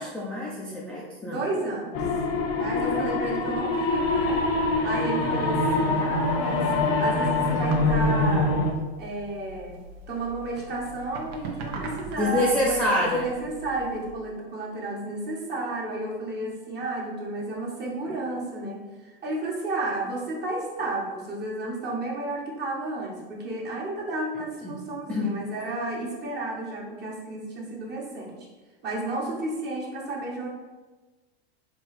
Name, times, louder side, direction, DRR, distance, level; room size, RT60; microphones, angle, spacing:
voice 1, 0.0-1.4 12.2-13.3 24.6-24.7 25.1-25.3, left 1 dB, 5° left, -6 dB, 0.4 m, -26 dB
voice 2, 1.2-2.0 2.6-4.4 4.8-6.7 7.0-8.5 9.0-9.8 10.1-28.3 28.8-30.5, right 2 dB, 35° right, -3 dB, 1.2 m, -32 dB
sound 1, 1.9-8.7, left 2 dB, 45° left, 0.7 m, -24 dB
sound 2, 5.8-14.1, right 3 dB, 55° right, 0.7 m, -40 dB
4.5 x 2.4 x 3.1 m, 1.2 s
supercardioid pair, 115°, 31 cm